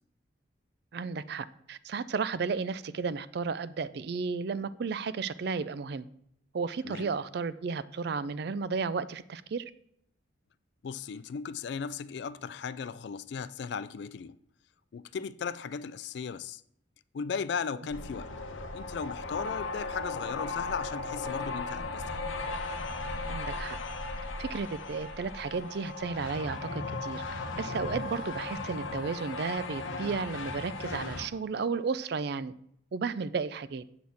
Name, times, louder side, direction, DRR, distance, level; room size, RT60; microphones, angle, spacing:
voice 1, 0.9-6.1 6.5-9.6 23.3-23.8 24.4-27.2 27.6-32.5 32.9-33.8, right 5 dB, 55° right, 0.4 m, -33 dB
voice 2, 10.8-14.4 14.9-16.6 17.1-18.3 18.7-22.2, left 6 dB, 60° left, 0.3 m, -36 dB
sound 1, 17.9-31.3, left 3 dB, 80° left, 0.9 m, -37 dB
7.8 x 4.2 x 6.9 m
head